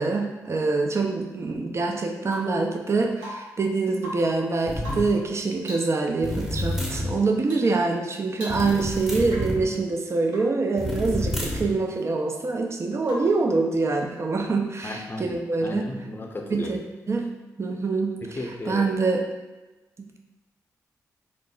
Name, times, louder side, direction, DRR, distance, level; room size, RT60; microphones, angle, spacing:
voice 1, 0.0-15.9 16.5-17.3 17.6-18.2 18.7-19.3 20.0-20.2, right 3 dB, 40° right, 3 dB, 0.4 m, -25 dB
Rain / Water tap faucet / Drip, 2.2-2.6 3.2-3.6 3.9-4.4 4.8-5.2 5.6-6.0 6.5-6.7 7.4-7.7 8.0-8.1 8.3-8.9 9.2-9.6 10.3-10.6 13.0-13.5 15.4-15.5, equal, 90° right, 0.8 m, -40 dB
sound 1, 4.7-5.1 6.2-7.1 8.5-9.6 10.8-11.7, left 1 dB, 5° right, 0.8 m, -29 dB
voice 2, 14.8-16.8 18.2-18.9, left 2 dB, 30° left, 2 dB, 0.5 m, -35 dB
2.4 x 2.0 x 3.6 m, 1.1 s
supercardioid pair, 45°, 7 cm